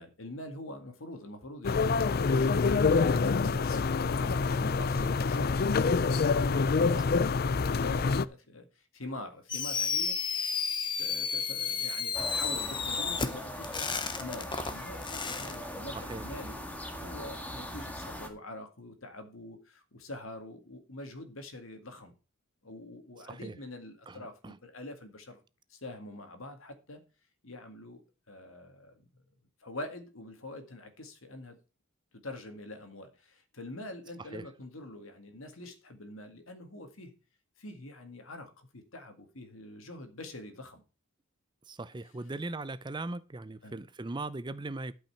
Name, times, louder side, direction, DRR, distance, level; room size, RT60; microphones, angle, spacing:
voice 1, 0.0-7.1 7.6-8.7 8.9-10.7 11.0-16.6 17.0-22.1 22.6-25.4 25.7-27.0 27.4-28.0 28.3-28.9 29.6-31.6 32.2-37.1 37.6-40.8 43.6-43.8, left 1 dB, 70° left, 2.0 m, -44 dB
sound 1, 1.6-8.2, left 4 dB, 45° left, 0.4 m, -26 dB
voice 2, 4.8-5.1 15.9-16.3 23.3-23.6 24.1-24.6 34.2-34.5 41.7-44.9, right 2 dB, 20° right, 0.5 m, -39 dB
Fireworks, 9.5-15.5, left 5 dB, 25° left, 0.9 m, -32 dB
sound 2, 12.1-18.3, equal, 5° left, 1.7 m, -40 dB
12.0 x 5.6 x 5.8 m
head